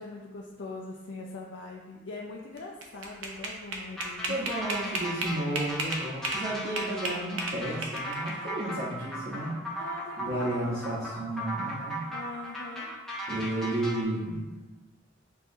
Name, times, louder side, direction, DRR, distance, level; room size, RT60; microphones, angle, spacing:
voice 1, 0.0-4.5 9.8-10.9 12.1-12.9, left 3 dB, 70° left, -2 dB, 0.4 m, -42 dB
sound 1, 2.6-6.4 6.8-8.3, right 3 dB, 80° right, 0.7 m, -33 dB
sound 2, 4.0-14.0, right 1 dB, ahead, 0.5 m, -37 dB
voice 2, 4.3-9.6 10.2-12.0 13.3-14.4, right 1 dB, 45° right, -8 dB, 0.7 m, -32 dB
6.8 x 2.4 x 2.5 m, 1.2 s
head